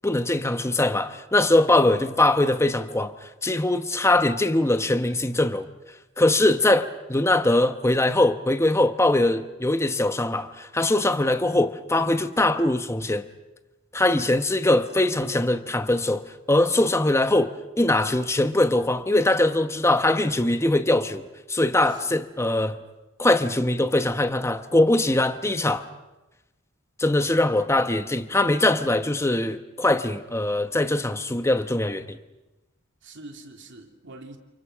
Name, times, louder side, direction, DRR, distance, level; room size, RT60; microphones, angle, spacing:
voice 1, 0.0-3.1 3.4-5.7 6.2-13.3 13.9-16.2 16.5-17.5 17.8-22.8 23.2-25.9 27.0-32.2, left 1 dB, 15° left, 1.0 m, -22 dB
voice 2, 1.7-2.1 21.8-22.1 33.0-34.4, right 2 dB, 60° right, 3.2 m, -44 dB
30.0 x 28.0 x 6.2 m
head